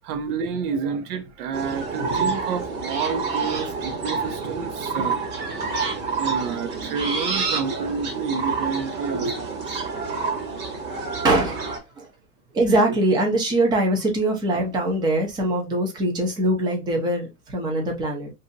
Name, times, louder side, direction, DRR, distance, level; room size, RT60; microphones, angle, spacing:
voice 1, 0.0-5.2 6.2-9.5, right 6 dB, 65° right, 0.9 m, -29 dB
sound 1, 1.5-11.8, right 4 dB, 35° right, 1.4 m, -28 dB
voice 2, 1.9-2.4 2.9-3.0 5.0-5.1 5.8-6.3 9.1-9.4 11.2-12.1 12.5-18.3, right 1 dB, 10° right, 0.4 m, -23 dB
2.6 x 2.6 x 3.8 m
supercardioid pair, 140°, 49 cm